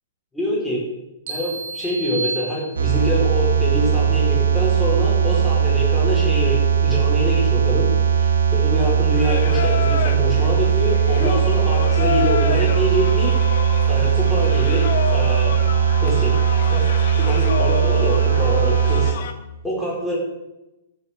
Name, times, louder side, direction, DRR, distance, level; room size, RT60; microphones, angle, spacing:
voice 1, 0.3-0.8 1.3-13.3 13.9-15.5 16.0-16.4 16.7-16.8 17.2-19.2 19.6-20.2, left 1 dB, 5° left, -6 dB, 4.3 m, -25 dB
sound 1, 1.3-3.2, right 4 dB, 55° right, 2.0 m, -31 dB
sound 2, 2.8-19.1, right 7 dB, 75° right, 1.7 m, -19 dB
Singing, 9.1-19.3, left 7 dB, 55° left, 0.8 m, -30 dB
14.0 x 7.2 x 3.7 m, 0.95 s
figure-of-eight pair, 115°, 0 cm